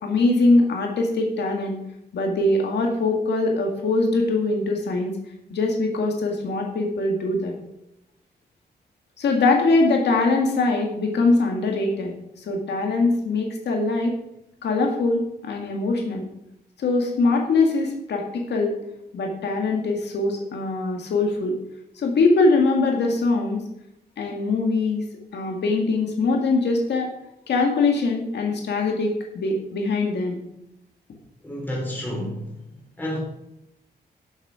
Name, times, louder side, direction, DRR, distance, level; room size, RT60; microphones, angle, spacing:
voice 1, 0.0-1.8 2.1-5.2 5.5-7.5 9.2-14.1 14.6-16.3 16.8-18.7 19.1-21.6 22.0-23.6 24.2-25.0 25.3-27.1 27.5-30.4, left 3 dB, 85° left, 1 dB, 1.9 m, -22 dB
voice 2, 31.4-32.6 33.0-33.2, equal, 10° left, -3 dB, 4.4 m, -30 dB
12.5 x 7.5 x 5.0 m, 0.82 s
wide cardioid pair, 160°, 17 cm